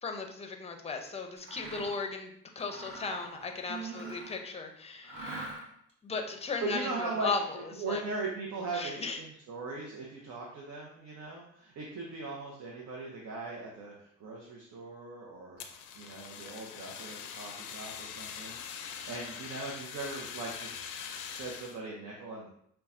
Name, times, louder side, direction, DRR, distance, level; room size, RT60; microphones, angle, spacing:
voice 1, 0.0-5.2 6.0-8.0 8.7-9.2, left 4 dB, 20° left, 4 dB, 0.5 m, -36 dB
Mechanisms, 1.4-2.1 2.6-4.5 5.0-5.9, right 1 dB, 40° right, 1.2 m, -44 dB
voice 2, 3.7-4.2 6.6-7.3 7.7-20.8 21.4-22.5, right 3 dB, 65° right, -2 dB, 0.7 m, -39 dB
Fire, 15.6-21.8, left 7 dB, 90° left, 0.5 m, -43 dB
5.4 x 2.3 x 2.5 m, 0.69 s
cardioid pair, 90°, 30 cm